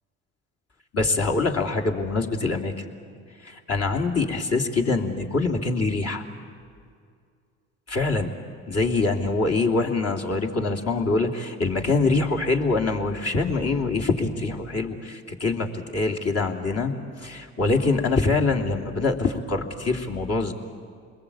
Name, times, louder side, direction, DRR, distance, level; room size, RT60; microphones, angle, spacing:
voice 1, 0.9-2.7 3.4-6.2 7.9-8.3 8.7-15.7 15.9-16.9 17.2-20.5, left 3 dB, 40° left, 2 dB, 3.2 m, -24 dB
28.0 x 21.0 x 8.7 m, 2.2 s
hypercardioid pair, 70°, 37 cm